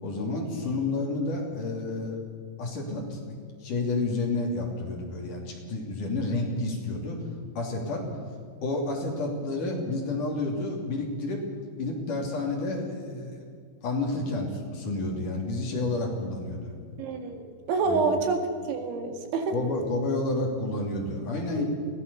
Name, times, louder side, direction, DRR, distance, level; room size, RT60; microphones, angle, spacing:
voice 1, 0.0-2.2 2.6-7.2 7.6-8.0 8.6-11.4 11.8-13.4 13.8-16.7 17.9-18.3 19.5-21.6, left 2 dB, 50° left, 0 dB, 4.1 m, -30 dB
voice 2, 17.0-18.4 18.7-19.5 21.6-21.7, right 4 dB, 85° right, 5 dB, 4.4 m, -27 dB
23.0 x 17.5 x 6.9 m, 2.1 s
omnidirectional pair, 5.2 m